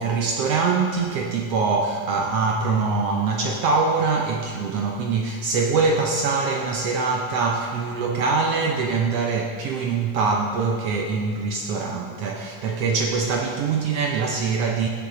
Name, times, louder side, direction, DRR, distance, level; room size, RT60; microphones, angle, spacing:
voice 1, 0.0-14.9, right 4 dB, 75° right, 1 dB, 1.4 m, -23 dB
16.5 x 7.4 x 3.8 m, 2.1 s
omnidirectional pair, 3.6 m